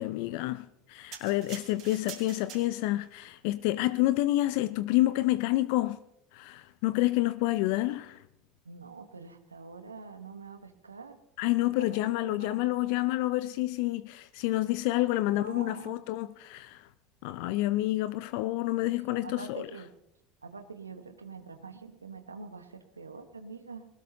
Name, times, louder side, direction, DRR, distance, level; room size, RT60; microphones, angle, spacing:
voice 1, 0.0-6.0 6.3-8.2 11.4-16.9 17.2-19.7, left 17 dB, 60° left, 0.5 m, -28 dB
sound 1, 1.1-3.1 3.7-3.9, right 10 dB, 55° right, 3.3 m, -46 dB
voice 2, 8.6-11.2 11.8-11.9 12.2-12.6 15.3-16.0 18.8-18.9 19.2-19.9 20.4-23.9, right 4 dB, 90° right, 1.1 m, -45 dB
20.5 x 19.0 x 2.8 m
figure-of-eight pair, 75°, 0 cm